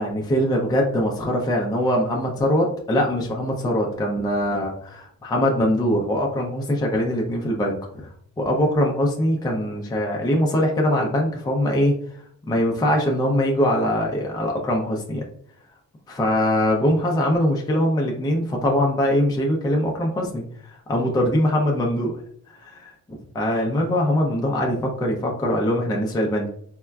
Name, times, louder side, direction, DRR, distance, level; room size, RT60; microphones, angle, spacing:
voice 1, 0.0-8.1 8.4-11.9 12.5-15.2 16.1-22.2 22.5-22.9 23.3-26.5, equal, 10° left, -1 dB, 0.5 m, -22 dB
3.6 x 2.2 x 2.2 m, 0.65 s
cardioid pair, 80°, 33 cm